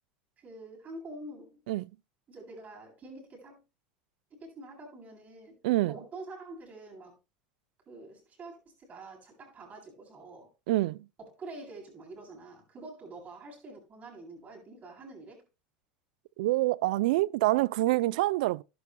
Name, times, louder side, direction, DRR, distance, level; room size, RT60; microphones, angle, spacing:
voice 1, 0.4-1.6 2.3-3.6 4.3-5.6 5.9-7.2 7.9-10.5 11.2-15.4, right 2 dB, 35° right, 8.0 m, -46 dB
voice 2, 5.6-5.9 10.7-11.1 16.4-18.6, right 18 dB, 75° right, 0.4 m, -26 dB
12.5 x 11.5 x 2.2 m
hypercardioid pair, 100°, 5 cm